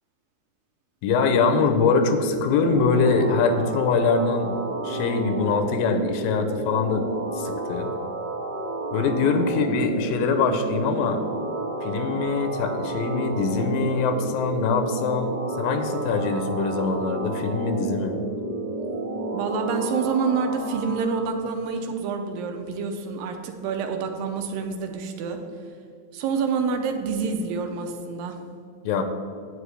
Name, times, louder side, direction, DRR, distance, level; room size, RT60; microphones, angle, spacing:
voice 1, 1.0-7.1 7.4-7.9 8.9-11.2 11.8-15.3 15.6-18.2 28.9-29.0, left 4 dB, 85° left, 7 dB, 2.4 m, -23 dB
sound 1, 1.4-21.3, right 2 dB, 65° right, 1.9 m, -31 dB
voice 2, 19.3-25.4 26.1-28.4, right 5 dB, 85° right, 5 dB, 2.4 m, -27 dB
9.7 x 8.2 x 3.3 m, 2.3 s
omnidirectional pair, 4.0 m